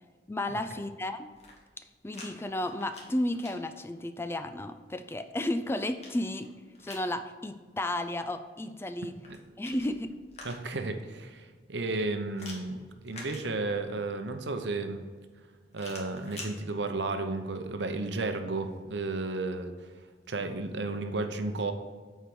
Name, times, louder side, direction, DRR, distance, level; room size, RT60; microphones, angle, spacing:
voice 1, 0.3-1.3 2.0-6.5 6.8-9.1 9.6-10.1, left 1 dB, 15° left, 10 dB, 0.4 m, -33 dB
sound 1, 1.3-2.3 2.6-3.5 5.2-7.1 9.1-10.9 12.4-13.9 15.7-16.5, left 2 dB, 40° left, 1.6 m, -47 dB
voice 2, 10.4-15.0 15.7-19.7 20.3-21.7, right 3 dB, 85° right, 7 dB, 0.8 m, -33 dB
8.2 x 4.6 x 6.1 m, 1.5 s
head